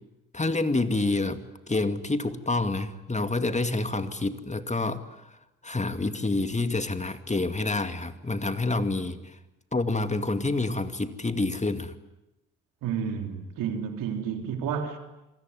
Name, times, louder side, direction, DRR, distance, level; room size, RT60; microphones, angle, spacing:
voice 1, 0.3-5.0 5.6-9.4 9.7-11.9, left 2 dB, 20° left, 2.3 m, -28 dB
voice 2, 12.8-15.0, right 7 dB, 75° right, 3.4 m, -31 dB
27.5 x 22.0 x 9.8 m
hypercardioid pair, 50°, 34 cm